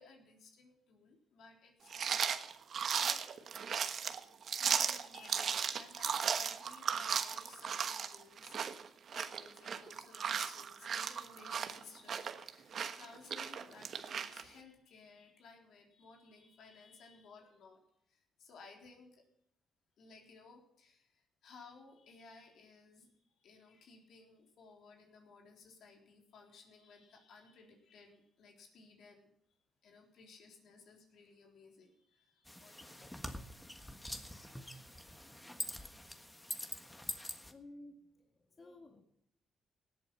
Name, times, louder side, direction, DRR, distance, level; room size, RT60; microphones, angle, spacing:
voice 1, 0.0-3.2 4.0-4.2 4.6-17.8 18.1-19.3 20.0-29.3 29.8-33.5, left 4 dB, 70° left, 1 dB, 3.8 m, -59 dB
sound 1, 1.9-14.4, right 7 dB, 55° right, 1.2 m, -36 dB
sound 2, 32.5-37.5, left 1 dB, 10° left, 1.5 m, -45 dB
voice 2, 37.5-37.9 38.5-39.0, left 2 dB, 35° left, 2 dB, 2.2 m, -53 dB
18.0 x 8.7 x 5.7 m, 0.74 s
cardioid pair, 90°, 0 cm